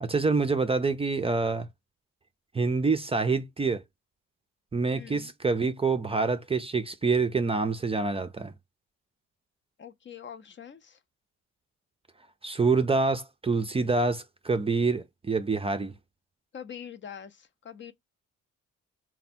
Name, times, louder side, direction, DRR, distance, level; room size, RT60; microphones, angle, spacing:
voice 1, 0.0-1.7 2.5-3.8 4.7-8.5 12.4-15.9, right 4 dB, 20° right, 0.4 m, -26 dB
voice 2, 4.9-5.3 9.8-11.0 16.5-17.9, left 8 dB, 40° left, 0.5 m, -44 dB
3.4 x 2.2 x 4.1 m
cardioid pair, 90°, 30 cm